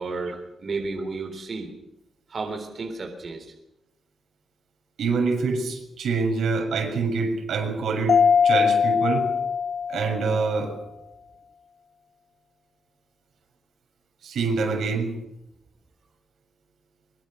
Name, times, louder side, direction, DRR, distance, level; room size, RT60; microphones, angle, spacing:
voice 1, 0.0-1.7 2.3-3.5, right 3 dB, 45° right, 4 dB, 3.7 m, -32 dB
voice 2, 5.0-8.2 8.4-9.3 9.9-10.8 14.2-15.1, right 4 dB, 85° right, 3 dB, 6.8 m, -25 dB
Mallet percussion, 8.1-10.6, left 6 dB, 50° left, 0.7 m, -21 dB
24.5 x 23.0 x 6.5 m, 0.87 s
wide cardioid pair, 130°, 0 cm